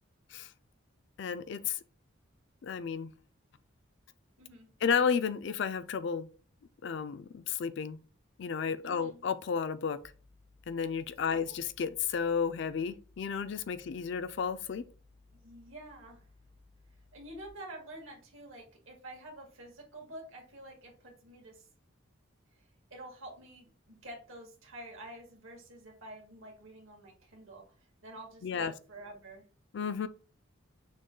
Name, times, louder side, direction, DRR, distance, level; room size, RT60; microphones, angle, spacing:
voice 1, 1.2-1.8 2.6-3.1 4.8-6.3 6.8-8.0 8.4-10.0 10.7-14.8 28.4-28.7 29.7-30.1, left 6 dB, 55° left, 0.4 m, -32 dB
voice 2, 4.4-4.7 8.8-9.2 11.2-11.6 15.4-16.2 17.1-21.6 22.9-27.6 28.0-29.4, right 1 dB, 75° right, 1.6 m, -48 dB
sound 1, 10.0-17.5, left 3 dB, 20° right, 0.4 m, -62 dB
6.2 x 2.2 x 3.7 m
head